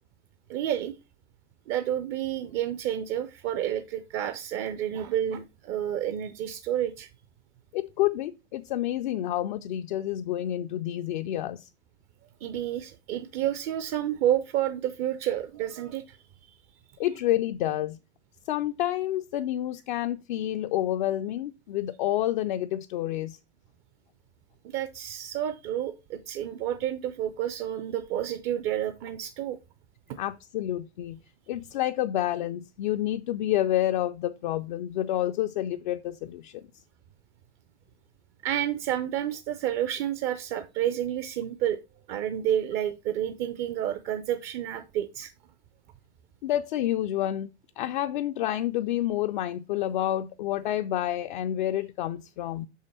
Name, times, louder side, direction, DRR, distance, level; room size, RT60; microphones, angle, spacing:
voice 1, 0.5-0.9 1.7-7.1 12.4-16.5 24.6-29.6 30.1-30.2 38.4-41.8 42.1-45.3, right 11 dB, 30° right, 0.5 m, -30 dB
voice 2, 7.7-11.7 17.0-18.0 18.5-23.4 30.2-31.2 31.5-36.7 46.4-47.5 47.8-52.7, left 13 dB, 45° left, 0.5 m, -29 dB
6.3 x 5.5 x 4.3 m
figure-of-eight pair, 90°, 33 cm